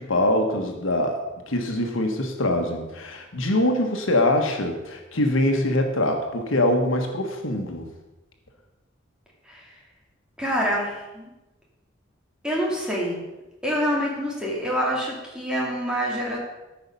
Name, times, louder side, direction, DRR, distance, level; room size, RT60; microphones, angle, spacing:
voice 1, 0.0-7.9, left 1 dB, 90° left, 3 dB, 1.5 m, -23 dB
voice 2, 10.4-11.3 12.4-13.2 13.6-16.4, equal, 5° right, -4 dB, 2.7 m, -26 dB
13.5 x 5.8 x 5.5 m, 1.0 s
head